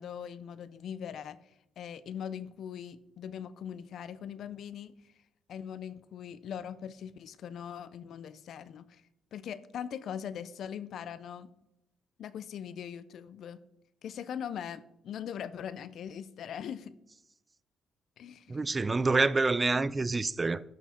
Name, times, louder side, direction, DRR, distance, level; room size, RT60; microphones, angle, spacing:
voice 1, 0.0-1.4 1.8-4.9 5.5-9.0 9.3-11.5 12.2-13.6 14.0-16.9 18.2-18.6, left 8 dB, 70° left, 0.5 m, -41 dB
voice 2, 18.5-20.6, right 3 dB, 25° right, 0.3 m, -27 dB
12.5 x 4.7 x 4.3 m
cardioid pair, 90°, 0 cm